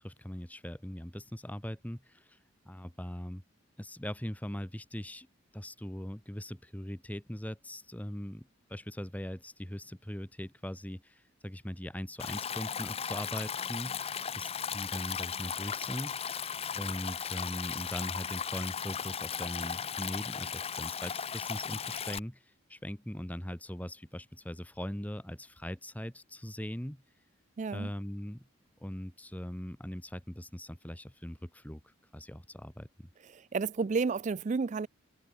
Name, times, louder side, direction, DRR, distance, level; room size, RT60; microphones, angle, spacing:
voice 1, 0.0-2.4 2.6-3.4 3.8-5.3 5.5-16.2 16.7-22.4 22.7-27.0 27.7-28.4 28.8-31.8 32.1-33.1, equal, 5° left, 1.5 m, -40 dB
Stream, 12.2-22.2, left 7 dB, 30° left, 0.6 m, -36 dB
voice 2, 27.6-27.9 33.3-34.9, right 4 dB, 35° right, 0.3 m, -31 dB
head